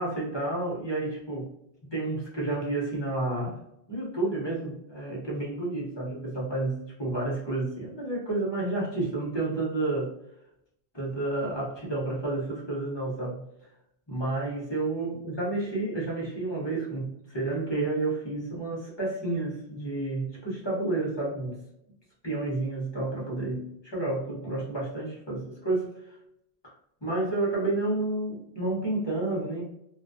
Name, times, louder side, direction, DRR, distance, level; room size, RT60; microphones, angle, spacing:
voice 1, 0.0-1.5 1.9-3.6 3.9-10.1 10.9-13.4 14.1-21.6 22.2-25.9 27.0-29.6, right 2 dB, 30° left, -5 dB, 0.7 m, -30 dB
2.3 x 2.2 x 2.5 m, 0.80 s
omnidirectional pair, 1.1 m